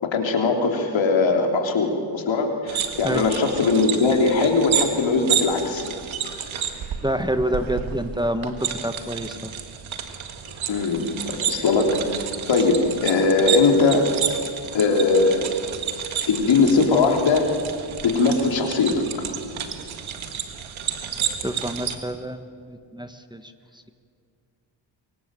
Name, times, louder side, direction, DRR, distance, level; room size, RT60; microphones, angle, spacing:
voice 1, 0.0-5.9 10.7-12.0 12.5-14.1 14.7-15.5 16.3-17.5 18.0-19.0, left 4 dB, 75° left, 2 dB, 3.6 m, -20 dB
sound 1, 2.7-22.0, right 8 dB, 90° right, 1.9 m, -30 dB
voice 2, 7.0-9.5 21.4-23.5, right 1 dB, 10° right, 8 dB, 1.4 m, -27 dB
24.5 x 24.0 x 7.7 m, 2.3 s
cardioid pair, 70°, 46 cm